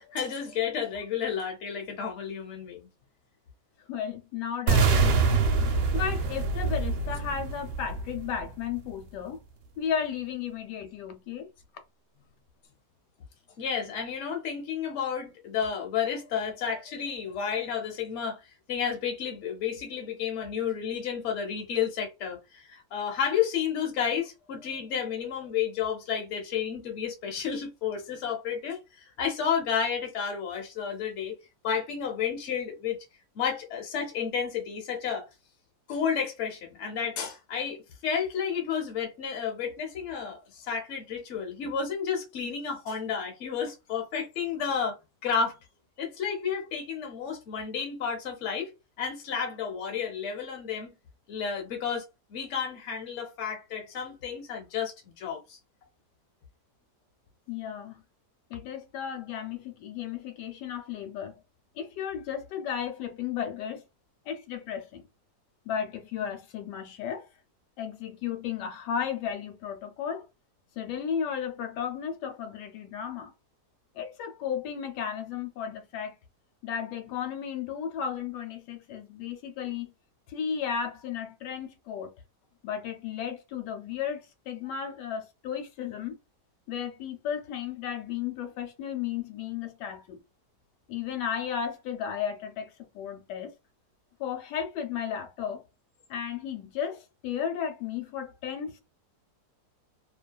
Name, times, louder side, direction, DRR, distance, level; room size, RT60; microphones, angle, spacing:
voice 1, 0.0-2.9 13.6-18.4 18.7-31.3 31.6-33.0 33.3-35.3 35.9-45.0 45.2-45.6 46.0-48.7 49.0-50.9 51.3-52.0 52.3-55.6, left 7 dB, 55° left, 1.0 m, -31 dB
voice 2, 3.9-5.4 5.9-9.4 9.8-11.5 57.5-58.0 58.5-61.4 61.8-63.8 64.3-65.1 65.7-67.3 67.8-70.3 70.8-73.3 73.9-76.1 76.6-79.9 80.3-82.1 82.6-86.2 86.7-90.2 90.9-93.5 94.2-95.6 96.1-98.8, left 8 dB, 90° left, 1.2 m, -34 dB
sound 1, 4.7-8.7, right 4 dB, 80° right, 1.1 m, -25 dB
2.7 x 2.3 x 2.2 m
omnidirectional pair, 1.8 m